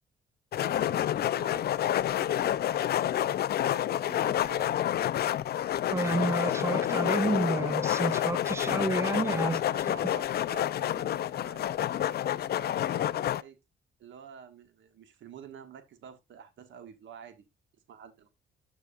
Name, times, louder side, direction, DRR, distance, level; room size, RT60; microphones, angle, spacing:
sound 1, 0.5-13.4, left 11 dB, 55° left, 0.4 m, -29 dB
voice 1, 0.5-4.8 9.6-13.6 14.0-17.4 17.9-18.3, right 8 dB, 75° right, 1.5 m, -49 dB
voice 2, 5.9-9.6, right 2 dB, 15° right, 0.5 m, -30 dB
13.0 x 4.7 x 2.4 m
cardioid pair, 90°, 20 cm